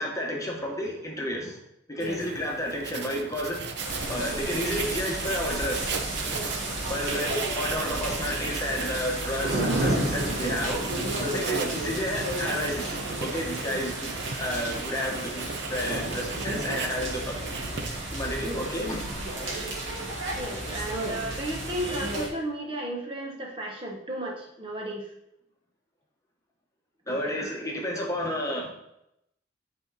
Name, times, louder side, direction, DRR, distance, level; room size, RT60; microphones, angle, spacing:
voice 1, 0.0-1.6 1.9-3.6 4.1-6.1 6.9-10.8 11.2-14.1 14.4-15.4 15.7-17.4 18.1-19.0 19.4-19.5 27.1-28.7, equal, 20° left, -1 dB, 1.3 m, -31 dB
Writing, 2.0-18.2, right 5 dB, 60° right, 0.7 m, -37 dB
sound 1, 3.8-22.3, right 1 dB, 90° right, 2.1 m, -32 dB
voice 2, 20.3-25.1 27.1-27.6, right 1 dB, 30° right, 0 dB, 1.1 m, -34 dB
8.5 x 4.4 x 4.1 m, 0.81 s
head